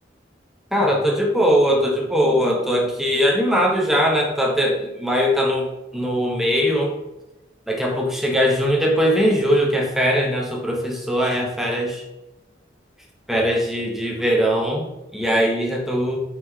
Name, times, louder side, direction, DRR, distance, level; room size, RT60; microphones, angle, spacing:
voice 1, 0.7-7.0 7.7-12.0 13.3-16.2, equal, ahead, -1 dB, 0.5 m, -20 dB
3.6 x 3.2 x 3.0 m, 0.96 s
head